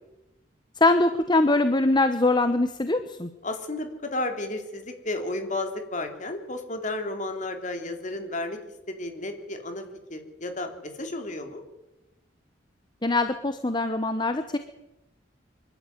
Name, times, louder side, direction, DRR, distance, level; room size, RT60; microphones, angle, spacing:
voice 1, 0.8-3.3 13.0-14.6, left 2 dB, 25° left, 9 dB, 1.0 m, -22 dB
voice 2, 3.4-8.6 8.9-9.8 10.1-11.6, left 2 dB, 40° left, 5 dB, 3.3 m, -32 dB
25.0 x 12.0 x 9.3 m, 0.98 s
head